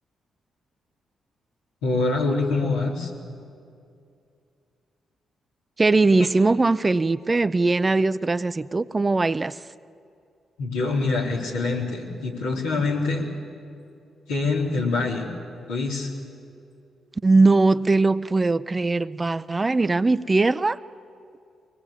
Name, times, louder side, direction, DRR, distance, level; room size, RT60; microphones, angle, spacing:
voice 1, 1.8-3.1 10.6-13.2 14.3-15.3 15.7-16.1, left 3 dB, 85° left, -4 dB, 3.5 m, -25 dB
voice 2, 5.8-9.6 17.2-20.8, right 3 dB, 30° right, 15 dB, 0.6 m, -20 dB
23.0 x 19.5 x 8.6 m, 2.5 s
hypercardioid pair, 45°, 0 cm